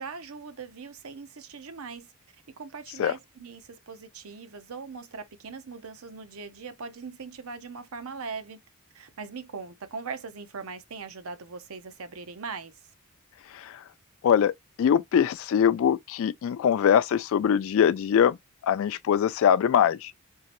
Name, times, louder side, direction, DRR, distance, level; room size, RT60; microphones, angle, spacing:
voice 1, 0.0-2.1 2.6-8.6 8.9-12.7, right 4 dB, 80° right, 0.7 m, -40 dB
voice 2, 13.5-13.8 14.2-14.5 14.8-18.4 18.6-20.1, left 8 dB, 65° left, 0.3 m, -22 dB
3.7 x 2.9 x 2.9 m
head